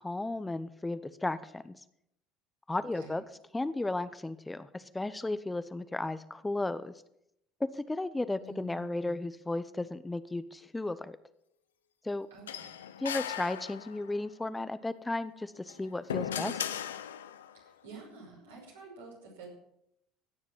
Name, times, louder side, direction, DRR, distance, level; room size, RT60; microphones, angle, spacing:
voice 1, 0.0-1.8 2.7-3.2 3.5-6.9 7.6-11.2 12.0-12.3 13.0-16.7, left 2 dB, 15° left, 13 dB, 0.8 m, -34 dB
voice 2, 8.4-9.3 12.3-12.8 17.5-19.5, right 3 dB, 85° right, -2 dB, 5.7 m, -50 dB
sound 1, 12.5-14.2 15.6-17.6, left 9 dB, 85° left, 0.6 m, -37 dB
16.0 x 7.2 x 7.3 m, 0.77 s
hypercardioid pair, 70°, 0 cm